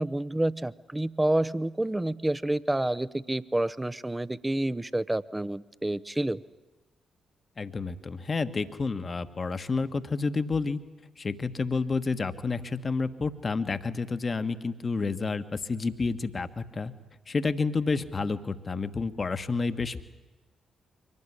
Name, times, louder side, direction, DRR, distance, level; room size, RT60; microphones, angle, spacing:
voice 1, 0.0-6.4, right 1 dB, 15° right, 15 dB, 0.8 m, -28 dB
voice 2, 7.6-10.8 11.2-16.9 17.3-20.0, left 4 dB, 40° left, 11 dB, 1.4 m, -30 dB
24.0 x 18.5 x 9.9 m, 1.2 s
hypercardioid pair, 40°, 0 cm